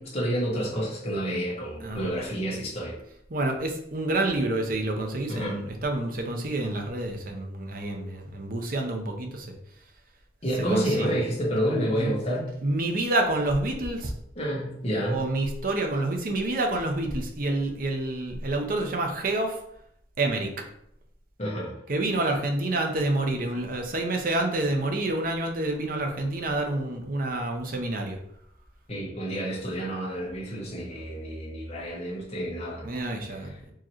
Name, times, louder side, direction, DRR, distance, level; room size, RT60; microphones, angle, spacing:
voice 1, 0.0-2.9 5.3-5.6 10.4-12.5 14.4-15.2 21.4-21.7 28.9-32.8, equal, 35° left, -5 dB, 1.4 m, -29 dB
voice 2, 1.8-2.1 3.3-9.5 10.6-11.1 12.0-12.1 12.6-14.1 15.1-19.6 20.2-20.5 21.9-28.2 32.8-33.7, right 2 dB, 50° right, 3 dB, 0.7 m, -28 dB
4.6 x 3.0 x 3.0 m, 0.73 s
head